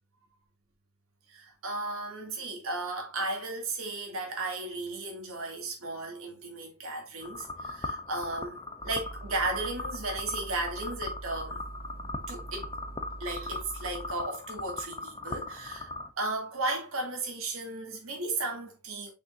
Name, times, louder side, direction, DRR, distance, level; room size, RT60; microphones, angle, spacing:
voice 1, 1.3-8.6 8.8-11.6 12.3-12.7 13.2-15.9 16.2-19.1, right 2 dB, 70° right, 2.7 m, -35 dB
sound 1, 7.2-16.1, left 2 dB, 25° left, 0.7 m, -39 dB
sound 2, 8.8-14.1, right 2 dB, 45° right, 0.7 m, -44 dB
6.6 x 5.6 x 2.6 m
head